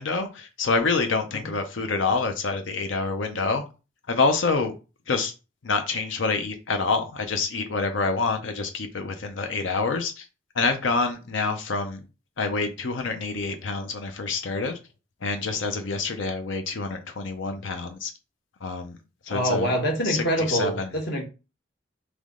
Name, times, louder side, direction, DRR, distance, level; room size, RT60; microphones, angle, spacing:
voice 1, 0.0-3.6 4.1-4.7 5.1-5.3 5.6-10.3 10.5-12.0 12.4-14.8 15.2-18.1 18.6-19.0 19.3-19.8 20.0-20.9, left 4 dB, 80° left, 6 dB, 0.6 m, -27 dB
voice 2, 19.3-21.2, equal, 60° left, 1 dB, 1.5 m, -25 dB
3.4 x 3.1 x 3.7 m, 0.31 s
head